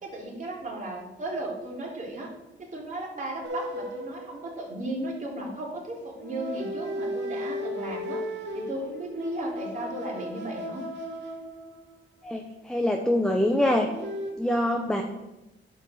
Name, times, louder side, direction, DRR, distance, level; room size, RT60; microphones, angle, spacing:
voice 1, 0.0-2.3 2.7-8.2 8.5-10.8 14.8-15.0, right 1 dB, 40° right, -2 dB, 2.9 m, -35 dB
sound 1, 3.4-5.1 6.2-12.2 13.6-14.3, equal, 65° right, 2.1 m, -36 dB
voice 2, 12.2-13.9 14.4-15.0, left 1 dB, 5° left, 2 dB, 0.8 m, -24 dB
10.5 x 5.3 x 6.2 m, 1.0 s
cardioid pair, 115°, 20 cm